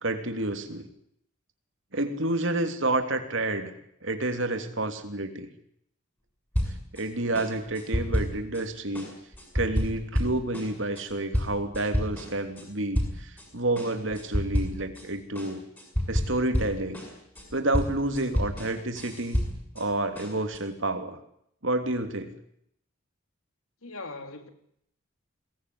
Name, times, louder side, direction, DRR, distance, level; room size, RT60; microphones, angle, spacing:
voice 1, 0.0-0.9 1.9-3.7 4.0-5.5 6.9-9.1 9.5-15.6 16.1-17.0 17.5-19.5 19.7-21.2 21.6-22.3, right 2 dB, 60° right, 3.2 m, -29 dB
sound 1, 6.5-7.0 7.3-8.6 8.9-12.7 12.9-13.5 13.8-15.1 15.4-19.9 20.2-20.6, equal, 10° left, 6.9 m, -30 dB
voice 2, 23.8-24.5, left 3 dB, 80° left, 3.5 m, -40 dB
23.0 x 19.0 x 9.7 m
head